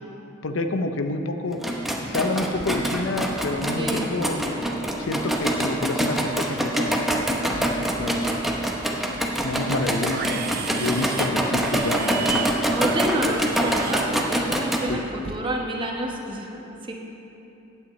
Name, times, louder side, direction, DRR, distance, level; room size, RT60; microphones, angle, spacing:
voice 1, 0.4-1.6 2.1-4.4 5.0-7.1 7.7-8.4 9.4-12.8 14.9-15.0, left 2 dB, 75° left, 7 dB, 0.6 m, -28 dB
sound 1, 1.5-14.8, right 1 dB, ahead, 0.7 m, -25 dB
voice 2, 3.8-4.1 12.7-16.9, right 1 dB, 25° right, 0 dB, 1.0 m, -29 dB
sound 2, 3.8-14.0, right 1 dB, 70° right, 0.9 m, -45 dB
Livestock farm animals working animals, 7.0-7.7 7.9-8.7 9.0-14.6 14.9-15.4, right 7 dB, 50° right, 0.5 m, -35 dB
15.5 x 8.8 x 3.2 m, 3.0 s
head